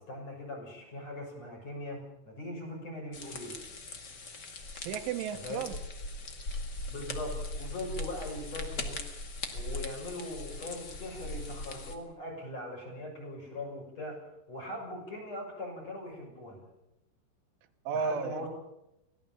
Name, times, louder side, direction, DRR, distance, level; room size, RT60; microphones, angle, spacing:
voice 1, 0.0-3.6 5.4-5.7 6.9-9.0 9.5-16.7 17.9-18.5, left 1 dB, 35° left, 2 dB, 7.5 m, -41 dB
sound 1, 3.1-12.0, left 2 dB, 50° left, 1.2 m, -40 dB
voice 2, 4.8-5.8 17.9-18.5, right 6 dB, 85° right, 7 dB, 3.6 m, -33 dB
24.5 x 17.5 x 7.2 m, 0.86 s
omnidirectional pair, 5.5 m